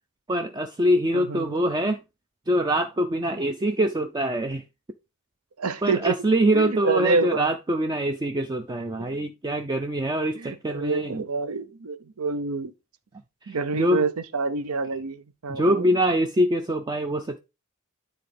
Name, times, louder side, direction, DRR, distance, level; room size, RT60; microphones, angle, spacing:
voice 1, 0.3-2.0 2.5-4.6 5.8-11.2 13.5-14.0 15.5-17.4, right 1 dB, 20° right, 0.4 m, -24 dB
voice 2, 1.1-1.6 5.6-6.2 6.5-7.5 9.0-9.2 10.3-12.7 13.5-15.9, right 4 dB, 85° right, 0.7 m, -27 dB
9.8 x 3.8 x 3.4 m
head